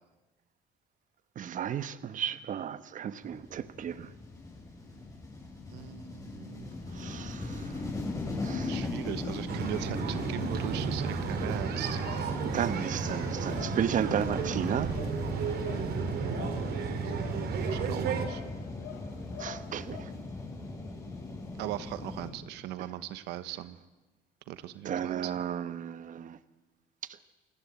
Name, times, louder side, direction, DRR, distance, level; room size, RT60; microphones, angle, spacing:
voice 1, 1.4-4.1 6.9-7.6 8.4-8.8 12.5-14.9 19.4-20.1 24.8-26.4, right 9 dB, 50° right, 13 dB, 1.2 m, -33 dB
sound 1, 3.2-22.3, left 2 dB, 20° left, 6.7 m, -39 dB
voice 2, 5.7-6.7 8.7-12.0 17.0-17.1 17.7-18.4 21.6-23.8 24.5-25.4, right 13 dB, 90° right, 13 dB, 1.1 m, -39 dB
sound 2, 9.5-18.3, right 5 dB, 70° right, 3.7 m, -33 dB
sound 3, 12.0-20.0, left 7 dB, 85° left, 4.6 m, -48 dB
28.5 x 18.0 x 8.4 m, 1.1 s
cardioid pair, 110°, 17 cm